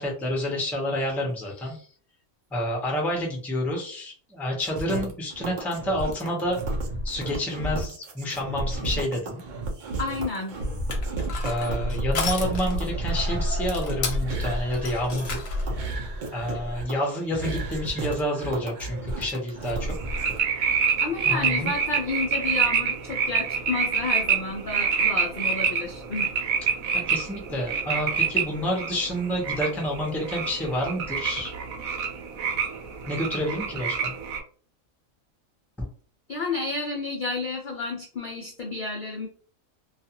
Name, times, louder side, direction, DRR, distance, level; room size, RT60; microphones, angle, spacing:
voice 1, 0.0-1.9 2.5-6.6 7.0-9.4 11.4-15.6 16.3-19.9 21.2-21.7 26.9-31.5 33.1-34.1 35.8-35.9, equal, ahead, -1 dB, 0.3 m, -29 dB
sound 1, 4.6-20.4, right 2 dB, 55° right, 0.5 m, -32 dB
voice 2, 10.0-10.6 21.0-26.3 36.3-39.3, left 3 dB, 80° left, 0 dB, 0.4 m, -31 dB
Crushing, 10.6-15.8, left 2 dB, 55° left, 0.8 m, -30 dB
sound 2, 19.8-34.4, right 6 dB, 85° right, 1.0 m, -27 dB
2.4 x 2.3 x 2.7 m, 0.43 s
omnidirectional pair, 1.4 m